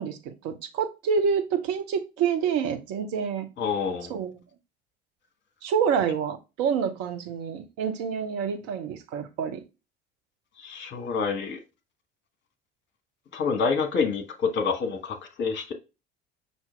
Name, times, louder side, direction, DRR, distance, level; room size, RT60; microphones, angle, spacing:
voice 1, 0.0-3.5 4.1-4.3 5.6-9.6, right 6 dB, 50° right, 0.9 m, -27 dB
voice 2, 3.6-4.1 10.6-11.6 13.3-15.7, left 5 dB, 35° left, 1.2 m, -27 dB
5.8 x 2.8 x 3.3 m
figure-of-eight pair, 60°, 31 cm